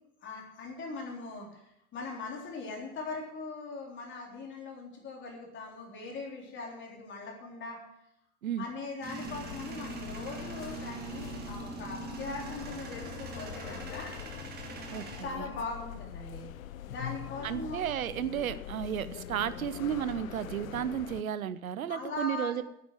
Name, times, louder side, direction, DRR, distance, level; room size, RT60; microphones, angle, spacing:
voice 1, 0.2-1.6 1.9-7.8 8.6-14.1 14.9-16.5 16.8-17.9 21.9-22.6, left 3 dB, 25° left, 0 dB, 3.8 m, -40 dB
Male speech man speaking / Vehicle / Engine starting, 9.0-15.2, right 4 dB, 20° right, 2.1 m, -42 dB
sound 1, 9.2-21.2, left 12 dB, 65° left, 0.7 m, -43 dB
voice 2, 14.9-15.5 17.4-22.6, right 9 dB, 70° right, 15 dB, 0.9 m, -33 dB
9.6 x 9.0 x 7.9 m, 0.78 s
figure-of-eight pair, 95°, 43 cm